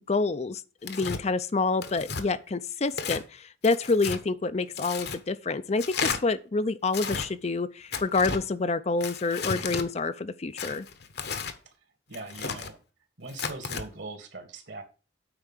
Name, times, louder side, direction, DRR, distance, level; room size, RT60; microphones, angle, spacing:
voice 1, 0.1-10.9, left 3 dB, 35° left, 0.5 m, -28 dB
Tearing, 0.8-1.2 1.8-2.2 2.9-3.2 3.6-4.2 4.7-5.2 5.8-6.2 6.9-7.3 7.9-8.4 9.0-9.9 10.6-11.6 12.1-12.7 13.3-13.8, left 5 dB, 55° left, 1.0 m, -33 dB
voice 2, 12.1-12.8 13.2-14.8, right 2 dB, 65° right, 2.5 m, -41 dB
8.8 x 4.6 x 7.4 m
head